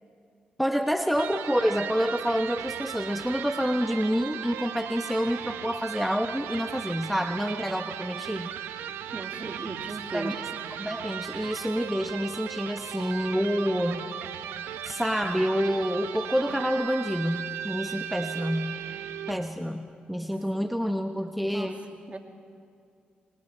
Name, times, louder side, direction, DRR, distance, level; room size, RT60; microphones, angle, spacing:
voice 1, 0.6-8.5 10.1-10.4 10.8-14.1 14.8-18.8 19.3-21.8, equal, ahead, 6 dB, 1.1 m, -28 dB
Electric guitar, 1.1-19.5, right 10 dB, 85° right, 0.9 m, -37 dB
voice 2, 9.1-10.4 20.2-20.3 21.5-21.7 22.1-22.2, right 3 dB, 35° right, 4 dB, 2.7 m, -37 dB
28.5 x 24.0 x 4.4 m, 2.3 s
hypercardioid pair, 40°, 4 cm